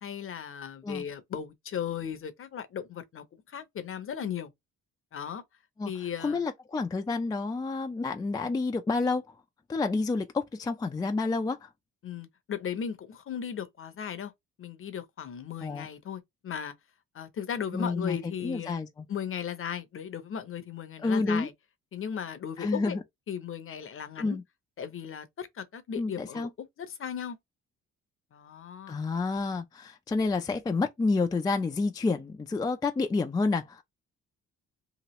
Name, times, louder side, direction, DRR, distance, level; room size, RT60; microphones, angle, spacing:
voice 1, 0.0-4.5 5.1-5.4 5.8-6.4 12.0-14.3 14.6-16.7 17.1-18.7 19.1-21.5 21.9-23.0 23.3-24.4 24.8-27.4 28.3-29.0, left 8 dB, 45° left, 0.7 m, -36 dB
voice 2, 6.2-9.3 9.7-11.7 15.6-15.9 17.7-19.0 21.0-21.5 22.6-23.0 24.2-24.4 26.0-26.5 28.9-33.8, left 3 dB, 15° left, 0.3 m, -29 dB
2.9 x 2.4 x 3.0 m
cardioid pair, 90°, 30 cm